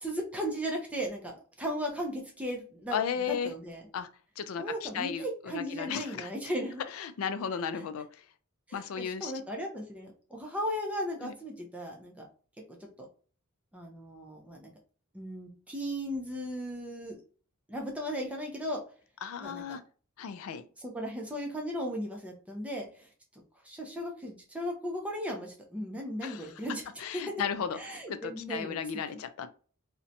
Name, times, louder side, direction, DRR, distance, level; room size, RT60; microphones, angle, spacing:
voice 1, 0.0-3.0 3.3-3.8 4.6-6.8 8.7-12.3 13.7-14.7 15.1-17.2 17.7-18.8 19.4-19.6 20.8-23.1 23.6-26.9 27.8-29.0, equal, 5° right, 0 dB, 0.5 m, -36 dB
voice 2, 2.9-3.5 3.9-4.1 4.4-6.3 6.9-8.1 8.7-9.3 11.2-11.3 19.2-19.8 20.2-20.6 26.2-26.5 27.0-27.8 28.1-29.5, left 7 dB, 65° left, 12 dB, 0.3 m, -35 dB
2.6 x 2.1 x 2.6 m, 0.41 s
head